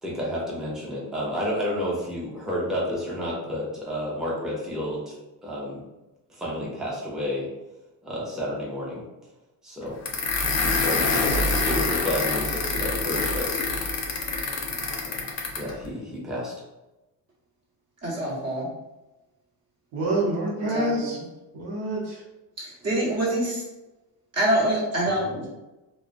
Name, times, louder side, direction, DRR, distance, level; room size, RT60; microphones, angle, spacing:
voice 1, 0.0-5.1 5.4-5.8 6.3-7.5 8.0-9.0 9.6-10.0 10.7-13.5 15.0-15.1 15.6-16.5, equal, ahead, -6 dB, 0.7 m, -30 dB
sound 1, 10.0-15.7, left 3 dB, 35° left, 0.5 m, -26 dB
voice 2, 18.0-18.7 20.7-21.1 22.6-23.6 24.3-25.5, right 1 dB, 35° right, -5 dB, 1.1 m, -25 dB
voice 3, 19.9-21.2 21.5-22.2 25.0-25.3, right 1 dB, 90° right, -3 dB, 0.8 m, -27 dB
2.3 x 2.1 x 2.5 m, 1.0 s
supercardioid pair, 85°, 46 cm